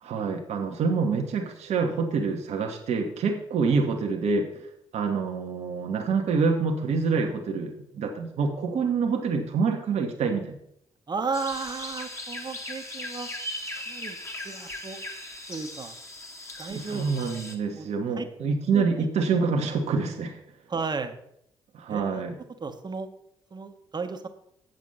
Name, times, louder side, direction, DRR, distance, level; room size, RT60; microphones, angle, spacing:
voice 1, 0.0-4.7 4.9-10.6 16.7-20.4 21.7-22.3, right 5 dB, 60° right, 3 dB, 1.3 m, -26 dB
voice 2, 11.1-13.3 13.7-14.2 14.4-15.0 15.5-15.9 16.6-17.0 17.8-17.9 18.2-18.3 18.7-19.1 20.7-21.1 21.9-22.2 22.6-23.1 23.5-24.3, right 4 dB, 35° right, 8 dB, 1.2 m, -34 dB
sound 1, 11.3-17.6, left 1 dB, 20° left, 1.8 m, -38 dB
8.0 x 7.4 x 5.5 m, 0.72 s
hypercardioid pair, 45°, 13 cm